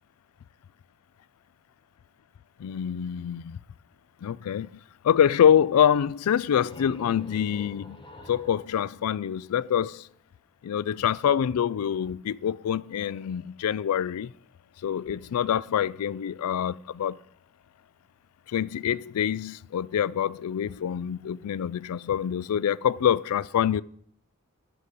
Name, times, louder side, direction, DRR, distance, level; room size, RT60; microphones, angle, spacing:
voice 1, 2.6-3.6 4.2-4.7 5.0-10.1 10.6-14.3 14.8-17.2 18.5-23.8, left 9 dB, 85° left, 0.3 m, -25 dB
sound 1, 6.5-10.0, left 2 dB, 25° left, 1.1 m, -47 dB
9.8 x 5.5 x 6.6 m
head